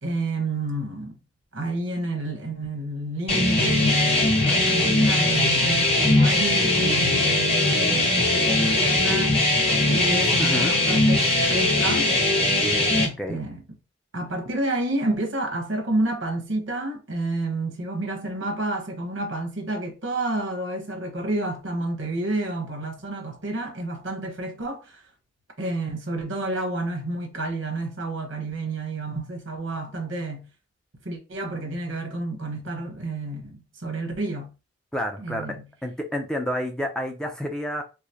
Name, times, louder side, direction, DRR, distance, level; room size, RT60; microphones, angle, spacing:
voice 1, 0.0-1.2 1.5-9.5 9.9-12.1 12.9-13.6 14.1-25.0 25.6-30.5 31.0-34.5 35.2-35.7, right 2 dB, 85° right, 1.2 m, -30 dB
sound 1, 3.3-13.1, left 2 dB, 30° left, 1.1 m, -20 dB
voice 2, 10.4-10.7 13.2-13.4 34.9-35.5 35.8-37.8, equal, 5° left, 0.4 m, -29 dB
4.7 x 2.0 x 2.7 m
head